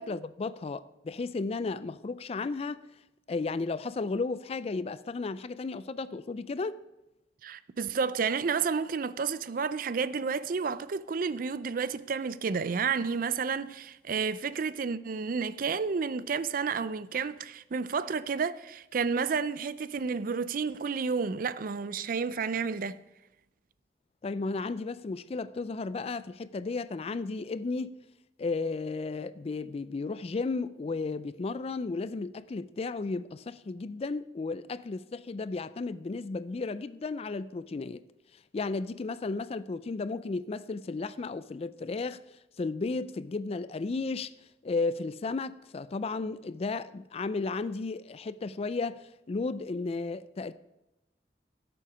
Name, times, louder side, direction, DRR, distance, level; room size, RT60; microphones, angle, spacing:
voice 1, 0.0-2.8 3.3-6.8 24.2-27.9 28.4-38.0 38.5-42.2 42.6-44.3 44.6-50.5, left 3 dB, 35° left, 0.4 m, -34 dB
voice 2, 7.4-23.0, right 5 dB, 50° right, 0.5 m, -31 dB
17.0 x 6.9 x 4.9 m
head